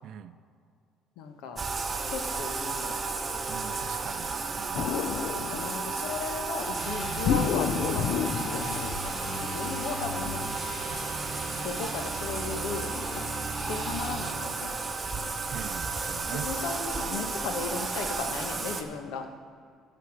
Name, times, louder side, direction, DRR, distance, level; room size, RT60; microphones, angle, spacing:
voice 1, 0.0-0.4 3.5-4.9 5.4-5.9 15.5-16.5, right 9 dB, 60° right, 12 dB, 0.5 m, -42 dB
voice 2, 1.2-1.6 2.1-2.9 5.1-8.2 8.5-10.4 11.6-13.2 13.7-14.8 16.4-19.2, left 5 dB, 85° left, 6 dB, 1.2 m, -36 dB
Bathtub (filling or washing), 1.6-18.8, right 4 dB, 20° right, 0.9 m, -33 dB
sound 1, 4.7-6.2 7.2-9.7, left 8 dB, 60° left, 0.5 m, -30 dB
sound 2, 6.7-14.3, equal, 35° left, 2.5 m, -38 dB
13.0 x 6.8 x 6.4 m, 2.2 s
cardioid pair, 125°, 0 cm